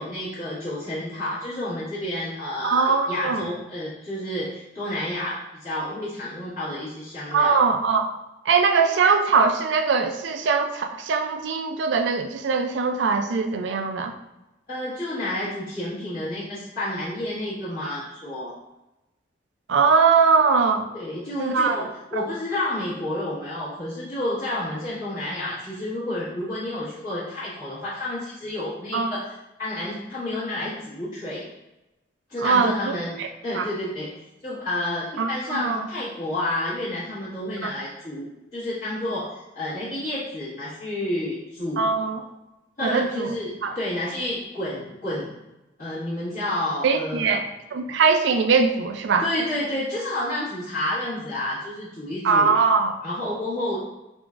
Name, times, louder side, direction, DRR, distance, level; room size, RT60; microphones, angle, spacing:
voice 1, 0.0-7.6 14.7-18.5 20.9-29.3 29.6-31.4 32.3-33.2 33.4-34.1 34.4-41.9 42.8-45.3 45.8-47.4 49.2-52.5 53.0-53.8, left 1 dB, 50° left, -15 dB, 1.4 m, -30 dB
voice 2, 2.6-3.5 7.3-8.1 8.5-14.1 19.7-20.9 21.4-21.9 22.1-22.2 28.9-29.1 32.4-33.3 33.5-33.7 35.2-35.8 37.6-37.7 41.8-42.2 42.8-43.4 43.6-43.8 46.8-47.4 47.7-49.3 52.2-53.0, right 5 dB, 80° right, 6 dB, 0.4 m, -21 dB
3.7 x 3.4 x 2.4 m, 0.97 s
head